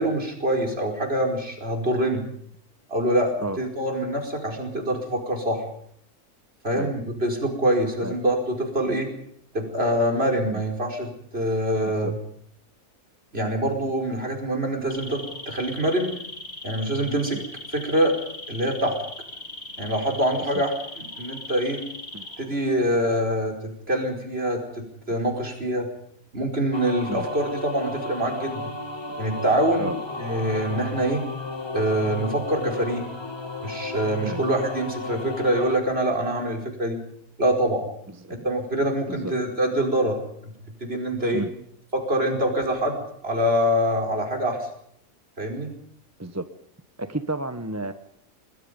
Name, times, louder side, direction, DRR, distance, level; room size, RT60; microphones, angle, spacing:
voice 1, 0.0-2.2 2.9-5.6 6.6-9.1 9.5-12.2 13.3-16.2 16.6-17.4 17.7-18.1 18.5-19.0 19.8-21.8 22.4-23.6 23.9-25.9 26.3-28.7 29.2-31.2 31.7-33.0 33.6-37.0 37.4-37.8 38.4-40.2 40.8-41.4 41.9-44.7 45.4-45.7, right 1 dB, 45° right, 2 dB, 5.4 m, -25 dB
sound 1, 14.9-22.8 23.0-23.4, left 2 dB, 80° left, 5.6 m, -39 dB
sound 2, 26.7-35.8, left 3 dB, 20° left, 2.4 m, -34 dB
voice 2, 47.0-47.9, right 2 dB, 15° right, 9 dB, 1.0 m, -31 dB
28.0 x 20.0 x 5.3 m, 0.67 s
omnidirectional pair, 1.4 m